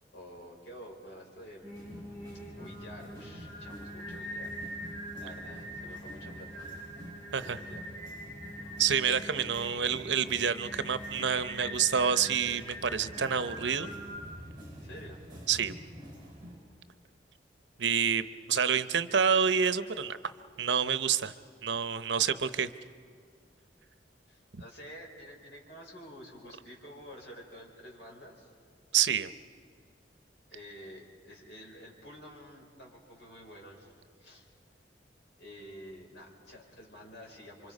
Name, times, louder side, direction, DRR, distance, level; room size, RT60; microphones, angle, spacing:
voice 1, 0.1-2.2 2.6-4.5 4.8-6.7 7.4-7.9 14.8-15.2 18.1-18.2 24.3-28.5 30.5-33.9 34.2-34.4 35.4-37.7, equal, 85° left, -1 dB, 5.2 m, -49 dB
Singing, 1.6-14.2, equal, 25° left, 7.2 m, -43 dB
sound 1, 1.7-16.6, equal, 25° right, 7.4 m, -48 dB
voice 2, 8.8-13.9 15.5-15.7 17.8-20.2 20.6-21.3 21.6-22.7 24.5-24.6 28.9-29.3, right 7 dB, 80° right, 12 dB, 0.8 m, -28 dB
28.5 x 25.5 x 5.4 m, 2.2 s
head